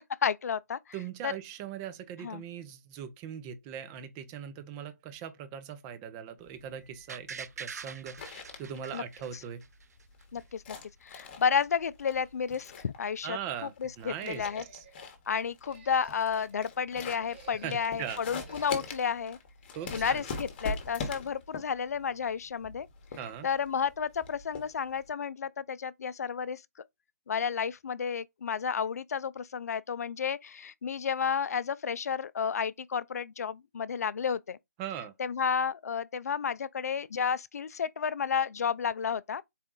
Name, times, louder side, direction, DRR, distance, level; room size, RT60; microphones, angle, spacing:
voice 1, 0.2-0.8 1.2-1.3 2.2-2.4 8.9-9.0 10.3-10.8 11.0-14.6 15.3-19.4 19.9-22.9 23.4-26.6 27.3-34.6 35.2-39.4, left 7 dB, 65° left, 0.3 m, -31 dB
voice 2, 0.9-8.2 8.6-9.6 13.2-14.5 14.7-14.8 17.6-18.2 19.8-20.2 23.2-23.5 34.8-35.1, right 9 dB, 20° right, 0.5 m, -40 dB
sound 1, 6.5-25.1, left 4 dB, 35° left, 1.0 m, -43 dB
sound 2, 7.1-10.0 10.4-10.5, right 6 dB, 65° right, 0.5 m, -44 dB
sound 3, 14.2-15.1 15.6-16.6 17.1-18.0 18.4-19.2 19.7-20.4, right 6 dB, 40° right, 0.9 m, -55 dB
4.1 x 2.3 x 3.6 m
hypercardioid pair, 150°, 9 cm